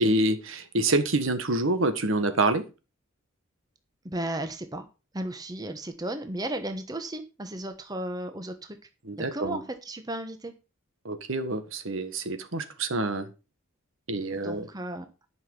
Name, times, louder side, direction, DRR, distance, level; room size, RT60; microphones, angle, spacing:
voice 1, 0.0-2.6 9.0-9.6 11.0-13.3 14.1-14.7, right 2 dB, 70° right, 9 dB, 1.5 m, -27 dB
voice 2, 4.0-4.9 5.1-8.8 9.2-10.5 14.3-15.1, right 1 dB, 20° right, 7 dB, 1.0 m, -34 dB
11.0 x 6.0 x 5.4 m, 0.31 s
head